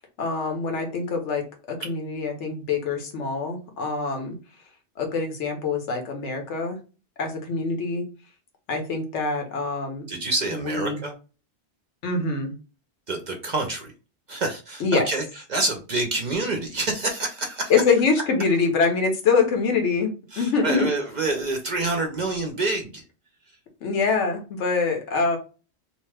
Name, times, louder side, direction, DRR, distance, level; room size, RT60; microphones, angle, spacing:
voice 1, 0.2-4.3 5.0-6.8 7.2-8.0 8.7-10.1 10.5-11.0 12.0-12.5 14.8-15.1 17.7-20.9 23.8-25.4, left 4 dB, 85° left, 4 dB, 1.1 m, -24 dB
voice 2, 10.1-11.1 13.1-13.9 14.3-17.7 20.3-23.0, right 2 dB, 50° right, 3 dB, 0.5 m, -27 dB
2.8 x 2.1 x 3.2 m, 0.33 s
omnidirectional pair, 1.2 m